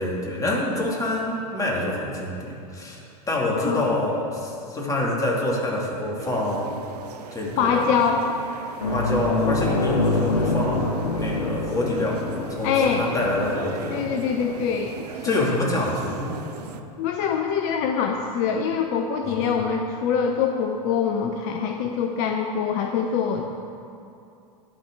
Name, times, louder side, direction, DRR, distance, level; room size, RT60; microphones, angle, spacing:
voice 1, 0.0-6.8 7.3-7.7 8.9-12.2 12.6-14.1 15.2-16.4 19.2-19.5, left 1 dB, 15° left, -3 dB, 2.5 m, -26 dB
voice 2, 3.5-3.9 7.6-8.3 12.6-13.1 13.9-15.4 17.0-23.5, left 6 dB, 55° left, 3 dB, 0.8 m, -24 dB
sound 1, 6.2-16.8, right 7 dB, 80° right, 0.7 m, -40 dB
sound 2, 8.8-17.7 18.1-18.3 20.3-20.4, left 3 dB, 75° left, 1.1 m, -28 dB
11.5 x 4.6 x 8.1 m, 2.6 s
hypercardioid pair, 90°, 20 cm